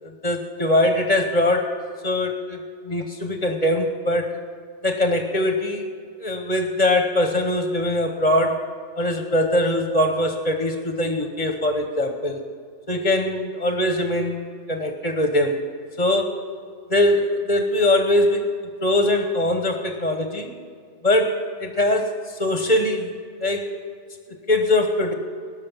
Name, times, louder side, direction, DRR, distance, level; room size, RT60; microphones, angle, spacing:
voice 1, 0.0-1.7 2.0-2.6 2.9-4.3 4.8-5.9 6.2-8.6 9.0-12.4 12.9-15.6 16.0-16.4 16.9-18.4 18.8-20.5 21.0-23.1 23.4-23.7 24.5-25.1, left 1 dB, 35° left, 5 dB, 1.0 m, -22 dB
18.0 x 6.3 x 7.2 m, 2.2 s
omnidirectional pair, 1.3 m